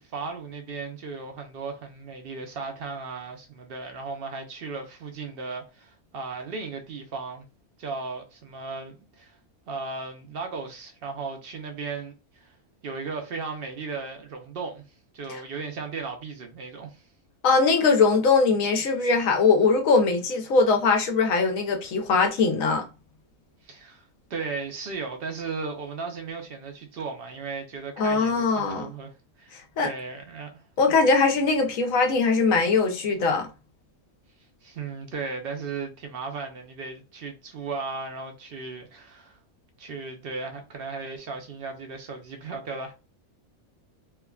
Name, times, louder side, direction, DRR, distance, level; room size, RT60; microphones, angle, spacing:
voice 1, 0.0-7.5 7.8-9.4 9.7-12.5 12.8-14.9 15.1-17.0 23.6-29.5 29.8-30.6 34.6-39.4 39.8-42.9, right 4 dB, 55° right, 0.7 m, -36 dB
voice 2, 17.4-22.9 28.0-28.9 29.5-29.9 30.8-33.5, left 4 dB, 75° left, 1.1 m, -21 dB
3.3 x 2.2 x 2.3 m
omnidirectional pair, 1.4 m